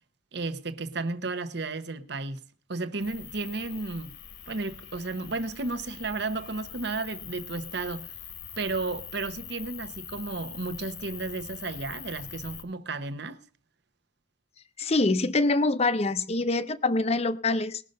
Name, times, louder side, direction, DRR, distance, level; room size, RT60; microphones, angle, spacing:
voice 1, 0.3-2.4 2.7-4.2 4.5-8.1 8.6-13.4, right 3 dB, 60° right, 1.0 m, -33 dB
sound 1, 3.0-12.6, left 8 dB, 65° left, 1.4 m, -43 dB
voice 2, 14.8-17.8, left 2 dB, 35° left, 0.7 m, -25 dB
20.0 x 6.7 x 5.3 m
head